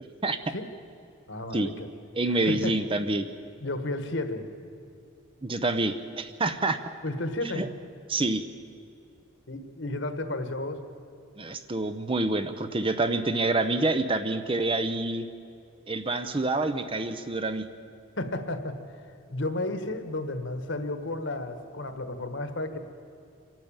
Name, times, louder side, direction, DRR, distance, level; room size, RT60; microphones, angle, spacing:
voice 1, 1.3-1.9 2.3-2.8 3.6-4.5 7.0-7.6 9.5-10.8 18.2-18.8 19.3-22.8, left 2 dB, 55° left, 8 dB, 1.5 m, -32 dB
voice 2, 2.2-3.3 5.4-6.8 7.6-7.7 8.1-8.4 11.4-15.3 15.9-17.7, right 2 dB, 25° right, 9 dB, 0.7 m, -27 dB
26.0 x 12.0 x 8.8 m, 2.5 s
head